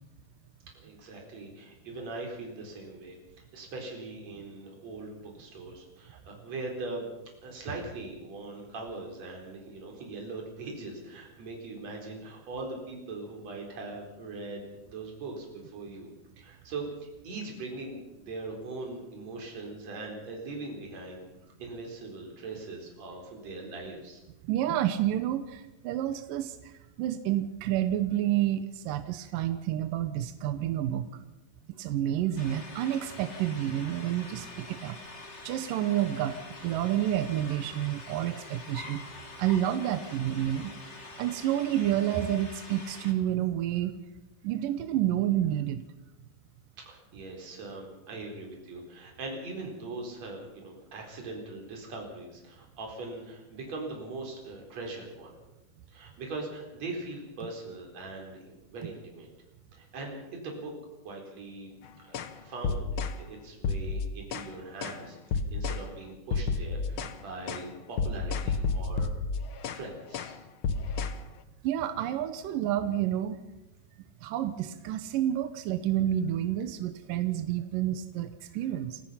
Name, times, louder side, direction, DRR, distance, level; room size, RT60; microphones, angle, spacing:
voice 1, 0.8-7.1 7.4-16.1 16.4-21.3 21.6-24.2 46.8-55.3 55.9-59.3 59.7-60.7 61.1-61.7 62.0-65.2 65.5-69.1 69.7-70.4, right 3 dB, 50° right, 0 dB, 5.3 m, -41 dB
voice 2, 24.5-26.7 27.0-31.1 31.8-35.0 35.4-36.4 36.6-40.7 41.2-44.0 44.4-45.9 71.6-73.4 74.2-79.0, right 12 dB, 80° right, 10 dB, 2.5 m, -29 dB
sound 1, 32.4-43.1, left 3 dB, 25° left, 1.8 m, -46 dB
sound 2, 62.1-62.3 62.6-63.2 63.6-64.5 64.8-65.0 65.3-65.9 66.3-67.2 67.5-67.7 68.0-69.8 70.1-70.4 70.6-71.2, left 4 dB, 85° left, 1.1 m, -31 dB
29.5 x 15.5 x 5.8 m, 0.97 s
omnidirectional pair, 4.0 m